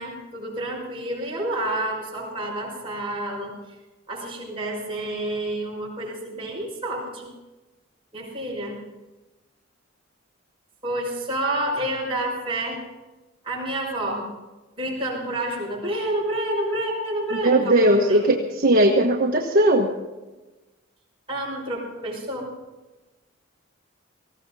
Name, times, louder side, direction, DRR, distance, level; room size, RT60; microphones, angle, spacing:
voice 1, 0.0-3.6 4.1-7.3 8.1-8.8 10.8-12.8 13.4-14.3 14.8-18.3 21.3-22.5, right 1 dB, 30° right, -3 dB, 6.0 m, -29 dB
voice 2, 17.4-19.9, right 1 dB, 45° right, 1 dB, 1.2 m, -18 dB
19.0 x 16.0 x 4.1 m, 1.1 s
head